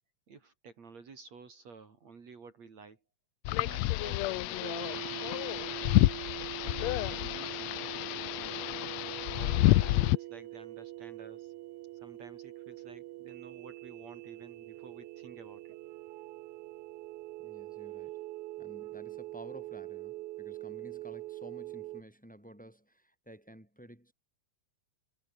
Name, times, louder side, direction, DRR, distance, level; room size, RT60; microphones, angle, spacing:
voice 1, 0.3-3.0 3.5-5.8 6.3-8.9 9.3-11.5 11.9-15.7 18.9-19.0 20.7-20.8, right 5 dB, 55° right, 4.7 m, -52 dB
sound 1, 3.4-10.2, left 18 dB, 80° left, 1.6 m, -29 dB
sound 2, 4.6-22.0, right 17 dB, 75° right, 2.1 m, -44 dB
voice 2, 17.4-18.2 18.6-24.1, equal, ahead, 6.5 m, -52 dB
omnidirectional pair, 3.6 m